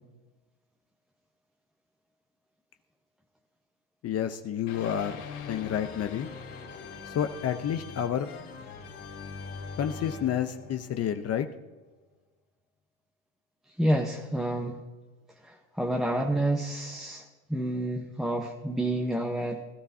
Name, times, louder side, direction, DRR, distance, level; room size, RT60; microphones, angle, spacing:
voice 1, 4.0-5.2 5.5-6.3 7.1-8.3 9.8-11.5, left 9 dB, 35° left, 8 dB, 0.8 m, -29 dB
sound 1, 4.7-11.6, left 5 dB, 85° left, 3.0 m, -42 dB
voice 2, 13.8-14.8 15.4-19.7, right 1 dB, ahead, 1 dB, 1.0 m, -29 dB
21.0 x 12.5 x 2.8 m, 1.2 s
supercardioid pair, 110°, 43 cm